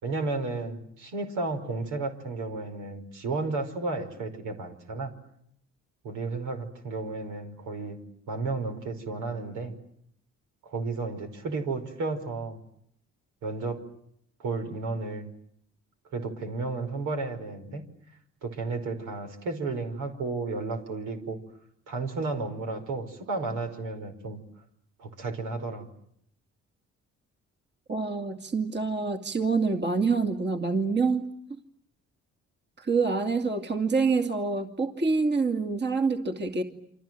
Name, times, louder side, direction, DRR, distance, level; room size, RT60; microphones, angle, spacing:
voice 1, 0.0-5.1 6.0-9.7 10.6-12.6 13.4-13.8 14.4-15.3 16.1-17.8 18.4-21.4 21.9-24.4 25.0-25.9, right 3 dB, 85° right, 6 dB, 5.3 m, -33 dB
voice 2, 27.9-31.2 32.8-36.6, right 4 dB, 35° right, 5 dB, 2.5 m, -26 dB
29.0 x 25.5 x 7.7 m, 0.71 s
cardioid pair, 90°, 30 cm